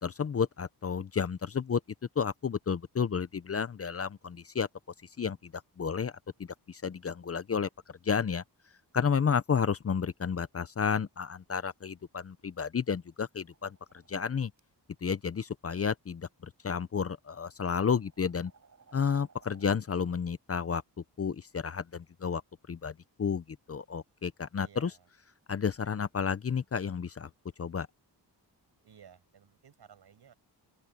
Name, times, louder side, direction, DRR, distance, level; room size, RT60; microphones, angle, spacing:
voice 1, 0.0-1.8 2.2-4.7 5.2-6.1 6.7-8.4 8.9-13.8 14.1-14.5 15.0-18.5 18.9-20.8 21.2-22.4 22.7-24.9 25.5-27.3 27.6-27.9, left 6 dB, 35° left, 0.7 m, -31 dB
sound 1, 13.5-14.6 15.7-15.9 16.8-16.9 17.5-19.7, right 5 dB, 40° right, 5.9 m, -61 dB
voice 2, 24.6-25.1 28.8-30.3, right 8 dB, 70° right, 6.6 m, -57 dB
open air
wide cardioid pair, 120°, 41 cm